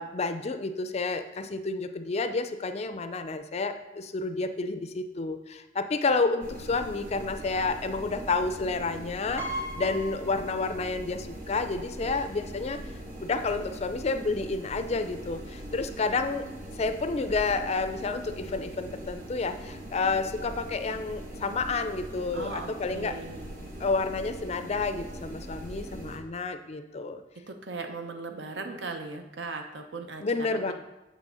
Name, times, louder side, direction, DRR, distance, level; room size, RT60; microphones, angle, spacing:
voice 1, 0.0-12.8 13.2-16.5 16.8-23.1 23.8-27.2 30.2-30.7, left 3 dB, 35° left, 9 dB, 0.4 m, -30 dB
sound 1, 6.4-26.2, right 1 dB, 50° right, 1.1 m, -41 dB
Piano, 9.4-11.2 11.5-11.6 12.8-12.9 13.2-13.4, right 1 dB, 15° right, 0.9 m, -38 dB
voice 2, 22.3-23.5 27.5-30.7, right 3 dB, 70° right, 5 dB, 0.8 m, -38 dB
7.6 x 3.3 x 6.3 m, 1.0 s
head